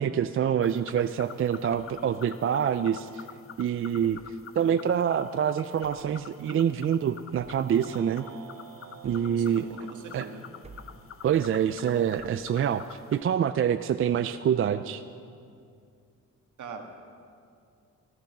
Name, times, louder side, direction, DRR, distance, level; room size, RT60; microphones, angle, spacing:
voice 1, 0.0-3.2 3.6-4.2 4.6-8.2 9.0-9.7 10.1-10.3 11.2-15.0, right 8 dB, 45° right, 10 dB, 0.4 m, -26 dB
sound 1, 0.6-13.2, left 8 dB, 45° left, 0.6 m, -48 dB
sound 2, 1.7-2.1 4.0-4.4 5.8-6.2 7.3-7.7 9.0-9.5 10.6-11.1 12.2-12.6, right 3 dB, 20° right, 0.9 m, -51 dB
sound 3, 7.8-12.1, right 9 dB, 90° right, 1.9 m, -51 dB
voice 2, 9.4-10.5 16.6-16.8, right 5 dB, 70° right, 3 dB, 1.7 m, -41 dB
14.0 x 11.5 x 5.9 m, 2.4 s
cardioid pair, 90°, 31 cm